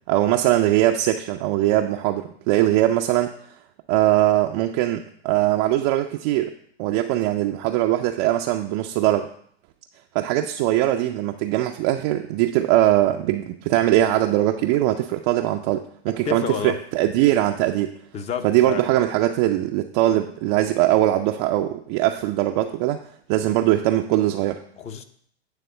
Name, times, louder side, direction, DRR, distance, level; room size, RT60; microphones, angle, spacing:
voice 1, 0.1-3.3 3.9-9.3 10.1-18.0 18.4-23.0 23.3-24.6, right 14 dB, 30° right, 4 dB, 0.4 m, -21 dB
voice 2, 16.2-16.8 18.1-18.9 24.8-25.0, left 7 dB, 20° left, 10 dB, 0.5 m, -30 dB
9.3 x 3.5 x 6.6 m, 0.63 s
hypercardioid pair, 120°, 33 cm